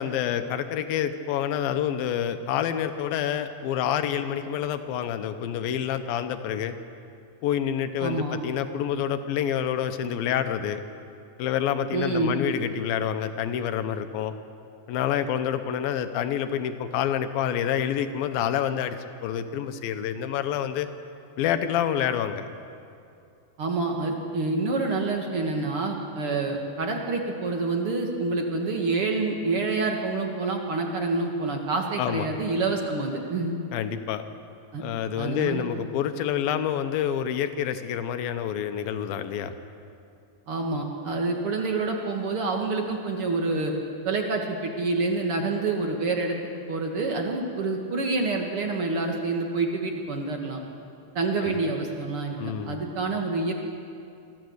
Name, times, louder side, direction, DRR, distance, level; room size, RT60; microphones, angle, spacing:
voice 1, 0.0-6.8 7.4-10.8 11.4-14.3 14.9-20.9 21.4-22.5 32.0-32.3 33.7-34.2 34.8-39.5 51.4-51.6 52.4-52.8, left 9 dB, 75° left, 9 dB, 2.5 m, -28 dB
voice 2, 8.0-8.4 11.9-12.4 23.6-33.5 34.7-34.8 35.2-35.6 40.5-43.7 44.1-46.4 46.7-50.6 51.2-53.5, right 3 dB, 50° right, 2 dB, 1.9 m, -27 dB
24.0 x 14.5 x 8.0 m, 2.5 s
omnidirectional pair, 4.6 m